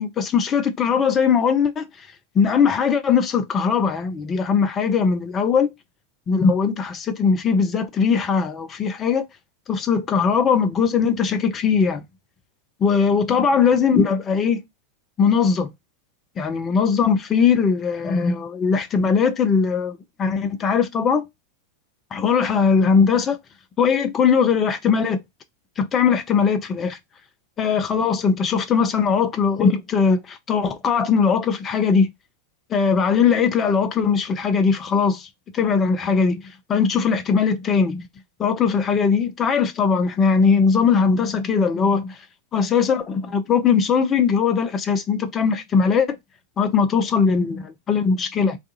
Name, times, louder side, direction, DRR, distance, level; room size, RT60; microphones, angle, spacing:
voice 1, 0.0-1.9 2.3-5.7 6.3-9.3 9.7-12.0 12.8-14.6 15.2-15.7 16.4-21.2 22.1-23.4 23.8-25.2 25.8-27.0 27.6-32.1 32.7-35.3 35.5-36.4 36.7-38.1 38.4-42.2 42.5-46.1 46.6-48.6, left 6 dB, 25° left, 0.5 m, -20 dB
2.4 x 2.3 x 2.7 m
figure-of-eight pair, 90°, 0 cm